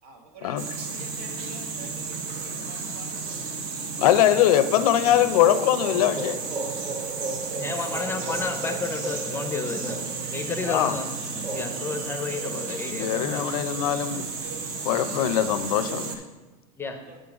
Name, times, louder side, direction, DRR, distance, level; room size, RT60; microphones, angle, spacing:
voice 1, 0.0-3.4 16.9-17.2, right 3 dB, 90° right, 1.5 m, -47 dB
sound 1, 0.6-16.2, right 4 dB, 60° right, 1.1 m, -33 dB
voice 2, 4.0-6.4 10.6-10.9 12.9-14.3 14.8-16.2, left 11 dB, 90° left, 0.5 m, -22 dB
sound 2, 5.1-12.8, right 2 dB, 25° right, 1.0 m, -37 dB
voice 3, 7.5-10.0 10.3-13.4 16.8-16.9, left 4 dB, 15° left, 0.5 m, -32 dB
8.1 x 3.9 x 5.8 m
supercardioid pair, 145°, 18 cm